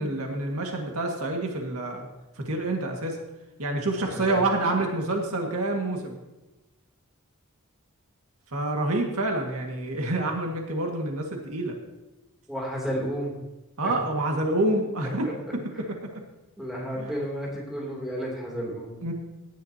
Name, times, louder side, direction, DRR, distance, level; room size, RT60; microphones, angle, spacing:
voice 1, 0.0-2.1 2.4-3.2 3.6-6.2 8.5-11.8 13.8-15.6 16.0-16.2 17.0-17.1 19.0-19.1, right 2 dB, 80° right, 1 dB, 1.9 m, -27 dB
voice 2, 3.9-4.4 12.5-13.4 13.8-13.9 15.2-15.3 16.6-19.0, equal, ahead, -3 dB, 3.0 m, -32 dB
17.0 x 10.5 x 2.9 m, 1.1 s
head